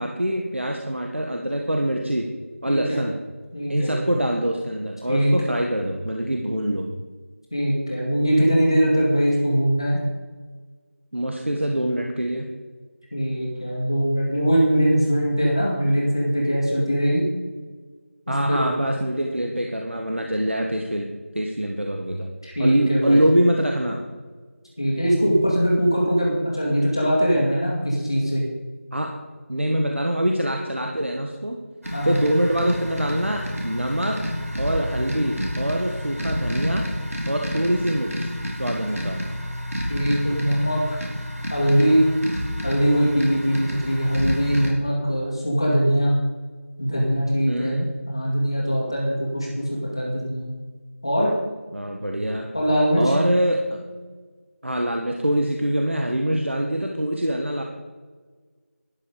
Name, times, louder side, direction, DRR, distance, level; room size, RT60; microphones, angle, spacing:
voice 1, 0.0-2.3 2.6-3.2 3.7-6.9 11.1-12.5 18.3-21.0 21.3-22.3 22.6-24.0 28.9-29.1 29.5-31.6 32.0-34.2 34.6-36.9 37.3-38.3 38.6-39.2 47.5-47.9 51.7-52.5 52.9-53.8 54.6-57.6, right 1 dB, 55° right, 2 dB, 1.5 m, -24 dB
voice 2, 2.7-3.0 3.5-4.0 5.1-5.5 7.5-10.0 13.1-17.3 18.5-18.6 22.4-23.2 24.8-28.4 31.9-32.2 39.8-40.8 41.5-42.1 42.6-46.1 46.8-47.8 48.1-50.5 51.0-51.3 52.5-53.1, equal, 20° left, -3 dB, 2.2 m, -21 dB
sound 1, 31.8-44.7, equal, 75° right, 4.2 m, -30 dB
12.5 x 10.5 x 5.1 m, 1.4 s
figure-of-eight pair, 180°, 8 cm